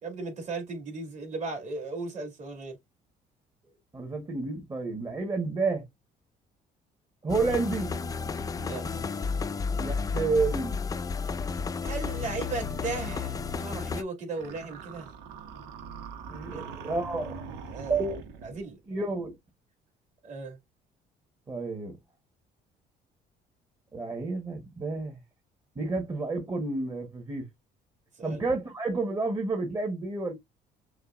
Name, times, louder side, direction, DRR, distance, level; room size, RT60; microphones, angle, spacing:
voice 1, 0.0-2.8 8.6-8.8 11.8-15.1 16.5-16.7 17.7-18.0 18.4-18.8 20.2-20.6 28.2-28.4, right 3 dB, 45° right, 2.4 m, -36 dB
voice 2, 3.9-5.8 7.2-7.9 9.8-10.8 16.3-17.5 17.9-18.2 18.9-19.4 21.5-22.0 23.9-25.2 25.7-27.5 28.2-30.3, right 3 dB, 25° right, 1.2 m, -30 dB
sound 1, 7.3-14.0, left 5 dB, 20° left, 0.4 m, -32 dB
sound 2, 14.4-18.7, right 5 dB, 90° right, 1.0 m, -42 dB
6.4 x 2.3 x 2.4 m
cardioid pair, 110°, 17 cm